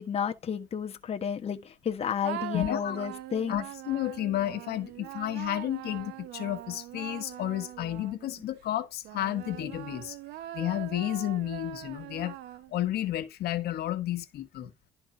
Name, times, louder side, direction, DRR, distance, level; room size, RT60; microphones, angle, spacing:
voice 1, 0.0-3.7, left 7 dB, 35° left, 1.2 m, -32 dB
sound 1, 2.2-8.5 9.0-13.0, right 14 dB, 90° right, 1.0 m, -42 dB
voice 2, 2.5-3.1 3.5-10.2 10.5-12.4 12.7-14.7, left 13 dB, 70° left, 1.6 m, -32 dB
12.0 x 4.4 x 4.5 m
cardioid pair, 110°, 17 cm